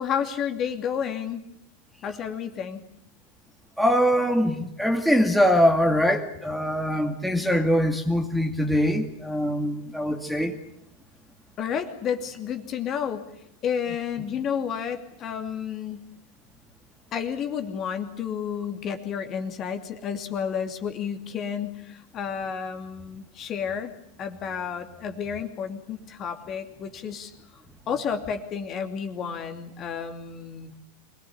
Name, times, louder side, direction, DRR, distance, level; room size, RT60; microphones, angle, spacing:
voice 1, 0.0-1.4 2.0-2.8 11.6-13.3 13.6-16.1 17.1-23.9 24.2-27.3 27.9-30.7, left 7 dB, 30° left, 6 dB, 2.7 m, -31 dB
voice 2, 3.8-10.6, equal, ahead, 5 dB, 2.3 m, -23 dB
26.0 x 21.0 x 8.7 m, 0.75 s
figure-of-eight pair, 90°, 0 cm